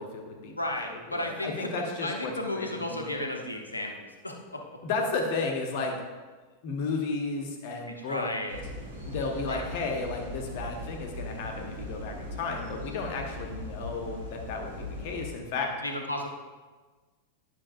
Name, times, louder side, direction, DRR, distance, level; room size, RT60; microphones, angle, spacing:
voice 1, 0.0-3.0 4.8-6.0 6.6-8.3 9.1-15.7, left 4 dB, 50° left, 2 dB, 1.2 m, -33 dB
voice 2, 0.5-4.6 8.0-8.6 9.5-9.7 15.8-16.3, left 1 dB, 80° left, 2 dB, 0.9 m, -34 dB
sound 1, 8.5-15.3, left 1 dB, 65° right, 2.1 m, -39 dB
10.0 x 5.9 x 2.7 m, 1.3 s
figure-of-eight pair, 90°, 0 cm